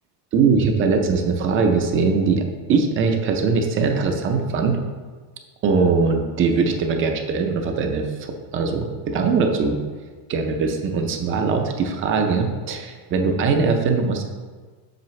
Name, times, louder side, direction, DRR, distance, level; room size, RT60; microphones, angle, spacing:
voice 1, 0.3-4.8 5.6-8.1 8.5-9.8 10.3-14.2, right 4 dB, 25° right, 4 dB, 0.5 m, -21 dB
7.5 x 6.6 x 3.1 m, 1.4 s
cardioid pair, 170°, 47 cm